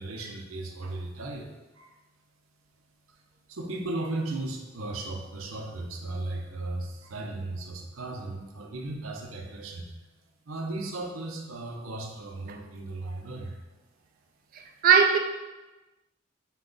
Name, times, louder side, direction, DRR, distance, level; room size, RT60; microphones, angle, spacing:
voice 1, 0.0-2.0 3.1-3.2 3.5-9.9 10.4-13.6 14.7-14.8, right 2 dB, 75° right, 0.7 m, -36 dB
voice 2, 14.5-15.2, right 6 dB, 45° right, 0.3 m, -20 dB
5.8 x 2.3 x 3.8 m
head